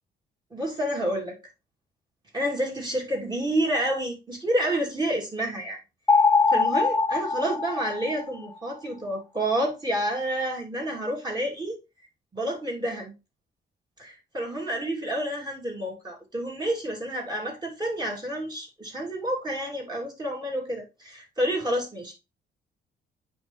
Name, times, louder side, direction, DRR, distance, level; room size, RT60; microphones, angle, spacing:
voice 1, 0.5-1.4 2.3-5.8 6.5-11.8 12.3-13.1 14.0-22.1, right 1 dB, 20° right, 3.1 m, -29 dB
sound 1, 6.1-8.5, left 4 dB, 15° left, 0.5 m, -22 dB
9.3 x 3.4 x 3.3 m
cardioid pair, 90°, 20 cm